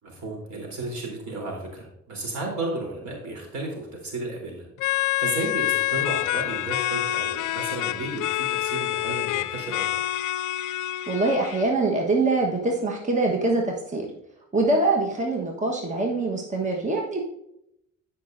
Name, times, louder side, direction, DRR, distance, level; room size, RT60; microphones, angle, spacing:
voice 1, 0.0-4.7 4.9-9.9, right 2 dB, 70° right, -1 dB, 3.8 m, -33 dB
sound 1, 4.8-11.6, left 15 dB, 80° left, 0.4 m, -27 dB
voice 2, 11.1-14.1 14.5-17.2, right 2 dB, 25° right, 0 dB, 1.3 m, -24 dB
15.0 x 5.5 x 2.7 m, 0.79 s
cardioid pair, 90°, 30 cm